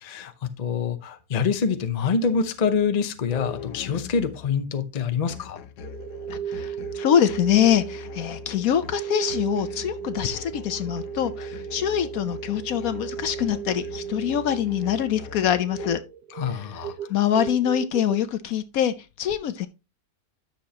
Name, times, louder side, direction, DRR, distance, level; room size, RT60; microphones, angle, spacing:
voice 1, 0.0-5.6 16.3-16.9, left 5 dB, 35° left, 0.7 m, -26 dB
sound 1, 3.3-4.5 5.3-16.0, left 8 dB, 85° left, 1.3 m, -41 dB
sound 2, 5.8-18.2, right 9 dB, 80° right, 1.2 m, -35 dB
voice 2, 6.3-16.0 16.5-16.7 17.1-19.7, left 10 dB, 70° left, 1.0 m, -24 dB
10.5 x 6.6 x 2.9 m
omnidirectional pair, 1.7 m